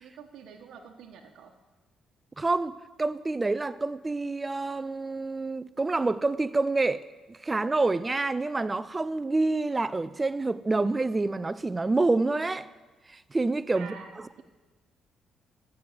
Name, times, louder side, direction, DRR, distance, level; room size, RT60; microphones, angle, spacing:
voice 1, 0.0-1.5 13.7-14.1, right 6 dB, 80° right, 1.1 m, -46 dB
voice 2, 2.4-7.0 7.3-12.7 13.3-13.9, right 3 dB, 20° right, 0.5 m, -27 dB
14.0 x 6.2 x 7.8 m
cardioid pair, 90°, 0 cm